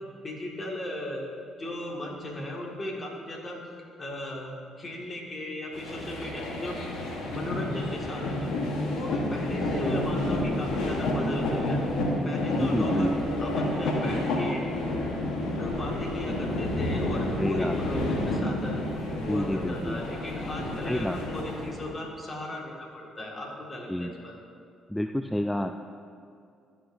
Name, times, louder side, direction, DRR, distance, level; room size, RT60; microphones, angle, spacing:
voice 1, 0.2-1.3 1.6-3.6 4.0-6.8 7.3-8.5 8.9-11.8 12.2-13.1 13.4-14.7 15.6-18.8 19.2-24.3, left 1 dB, 35° left, -1 dB, 1.9 m, -37 dB
sound 1, 5.7-22.0, left 1 dB, 70° left, 1.2 m, -29 dB
voice 2, 12.6-13.1 17.4-17.7 19.2-20.0 20.9-21.2 23.9-24.1 24.9-25.7, left 1 dB, 5° left, 7 dB, 0.3 m, -29 dB
12.5 x 5.4 x 2.7 m, 2.5 s
hypercardioid pair, 55°, 0 cm